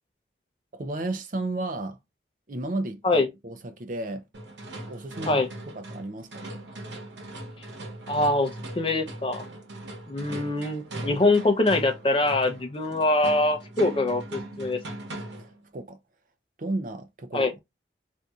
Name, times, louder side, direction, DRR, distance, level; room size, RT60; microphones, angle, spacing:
voice 1, 0.7-2.0 2.5-4.2 4.9-5.5 5.8-6.4 15.4-16.0 16.6-17.5, right 2 dB, 45° right, 0.5 m, -33 dB
sound 1, 4.3-15.6, right 1 dB, 80° right, 1.0 m, -39 dB
voice 2, 8.1-8.5 8.8-9.4 10.1-14.8 17.3-17.5, left 2 dB, 30° left, 0.6 m, -23 dB
4.0 x 2.6 x 2.3 m
head